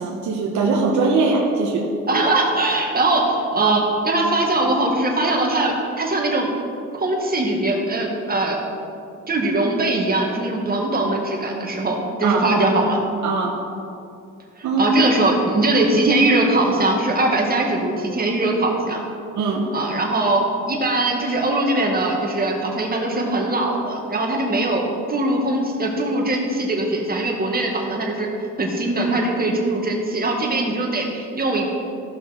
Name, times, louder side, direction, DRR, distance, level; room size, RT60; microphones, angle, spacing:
voice 1, 0.0-1.9 12.2-12.5 13.2-13.6 14.6-14.9 19.3-19.7, right 4 dB, 70° right, -1 dB, 1.2 m, -21 dB
voice 2, 2.1-6.5 6.9-8.6 9.3-13.0 14.6-19.0 19.7-24.8 25.1-28.3 28.6-31.7, right 2 dB, 30° right, 0 dB, 2.0 m, -21 dB
15.5 x 5.8 x 4.4 m, 2.5 s
cardioid pair, 90°, 30 cm